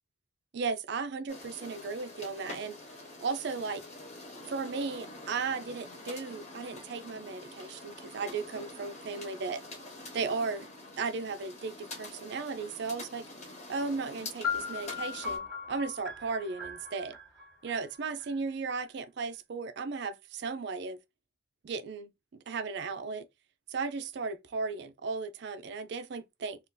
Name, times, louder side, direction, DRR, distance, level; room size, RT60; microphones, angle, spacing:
voice 1, 0.5-2.8 3.2-3.8 4.5-9.6 10.1-10.7 11.0-13.3 13.7-17.2 17.6-21.0 21.6-23.3 23.7-26.6, right 4 dB, 60° right, 0.4 m, -35 dB
sound 1, 1.3-15.4, left 2 dB, 35° left, 1.0 m, -46 dB
sound 2, 14.4-18.3, left 6 dB, ahead, 1.0 m, -38 dB
2.6 x 2.4 x 3.7 m
head